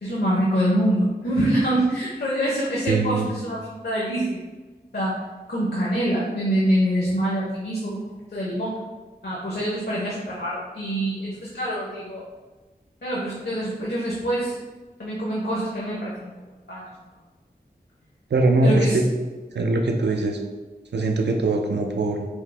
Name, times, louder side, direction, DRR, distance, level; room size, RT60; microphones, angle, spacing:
voice 1, 0.0-4.4 4.9-5.2 5.5-8.8 9.2-12.2 13.0-14.6 15.0-16.3 16.7-16.9 18.6-19.0, right 1 dB, 70° left, -6 dB, 0.7 m, -25 dB
voice 2, 2.9-3.3 18.3-19.0 19.5-20.4 20.9-22.3, right 2 dB, 90° right, 3 dB, 0.5 m, -21 dB
4.6 x 2.0 x 3.2 m, 1.3 s
wide cardioid pair, 65°, 17 cm